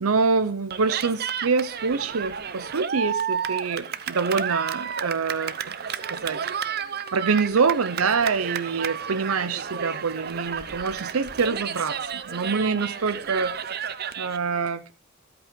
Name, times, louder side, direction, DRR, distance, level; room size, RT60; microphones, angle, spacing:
voice 1, 0.0-5.7 6.1-6.4 7.1-13.5 14.2-14.9, right 4 dB, 80° right, 0.7 m, -25 dB
Cheering, 0.7-14.4, right 7 dB, 45° right, 0.7 m, -32 dB
13.0 x 8.6 x 4.5 m
head